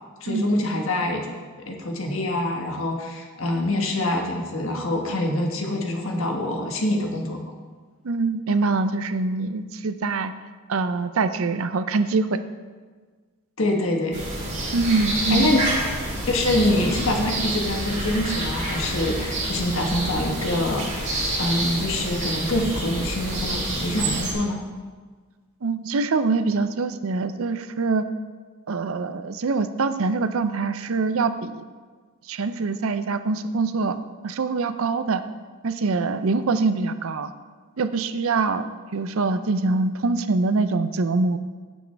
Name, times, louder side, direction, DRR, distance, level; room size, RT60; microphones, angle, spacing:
voice 1, 0.2-1.3 1.6-7.4 13.6-14.2 15.3-15.9 16.2-24.6, left 1 dB, 60° left, 1 dB, 1.5 m, -25 dB
voice 2, 8.0-10.3 10.7-12.4 14.7-15.5 25.6-28.1 28.7-31.6 32.3-34.0 34.2-35.2 35.6-37.3 37.8-41.4, right 3 dB, 65° right, 11 dB, 0.5 m, -24 dB
sound 1, 14.1-24.3, right 1 dB, 35° right, 2.2 m, -28 dB
16.0 x 6.3 x 3.4 m, 1.5 s
head